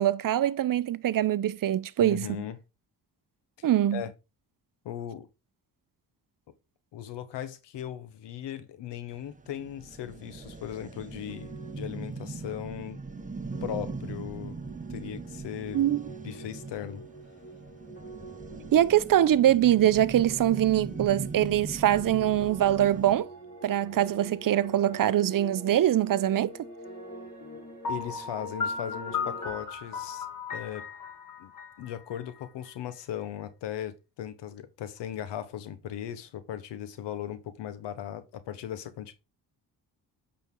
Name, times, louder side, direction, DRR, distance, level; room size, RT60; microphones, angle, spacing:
voice 1, 0.0-2.3 3.6-4.0 15.7-16.0 18.7-23.3 23.6-26.5, right 12 dB, 55° right, 0.6 m, -23 dB
voice 2, 2.0-2.6 3.6-4.1 4.8-5.3 6.9-13.0 13.6-14.6 14.9-15.9 16.2-17.0 27.9-30.3 30.5-30.8 31.4-31.5 31.8-39.1, left 10 dB, 90° left, 1.1 m, -38 dB
sound 1, 9.1-23.2, right 4 dB, 20° right, 0.9 m, -40 dB
sound 2, 10.3-29.5, right 1 dB, 25° left, 4.5 m, -47 dB
Piano, 27.8-32.7, left 5 dB, 50° left, 2.1 m, -36 dB
8.4 x 4.3 x 3.7 m
cardioid pair, 70°, 41 cm